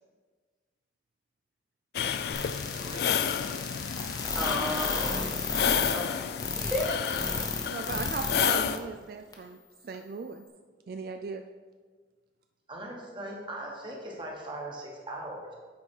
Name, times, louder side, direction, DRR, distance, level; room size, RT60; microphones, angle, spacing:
sound 1, 1.9-8.8, left 8 dB, 60° left, 0.3 m, -31 dB
sound 2, 2.3-8.5 8.7-8.8 9.3-9.4, left 4 dB, 20° left, 0.7 m, -32 dB
voice 1, 2.5-3.2 12.7-15.5, right 1 dB, 25° right, -1 dB, 1.2 m, -40 dB
voice 2, 4.3-7.0, left 1 dB, ahead, -3 dB, 1.3 m, -34 dB
voice 3, 7.6-10.5 10.9-11.4, right 4 dB, 55° right, 7 dB, 0.3 m, -37 dB
8.4 x 4.5 x 4.5 m, 1.4 s
head